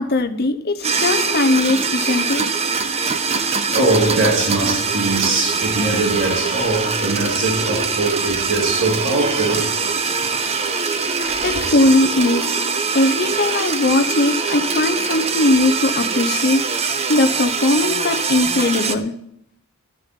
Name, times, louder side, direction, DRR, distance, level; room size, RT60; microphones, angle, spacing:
voice 1, 0.0-2.5 11.1-12.6 12.9-16.7 17.1-19.1, left 2 dB, 45° left, 0.8 m, -19 dB
sound 1, 0.8-19.0, right 5 dB, 30° right, 0.9 m, -22 dB
voice 2, 1.9-2.3 3.3-9.9 10.2-10.6, right 2 dB, 65° right, 2.7 m, -22 dB
12.5 x 6.7 x 9.2 m
head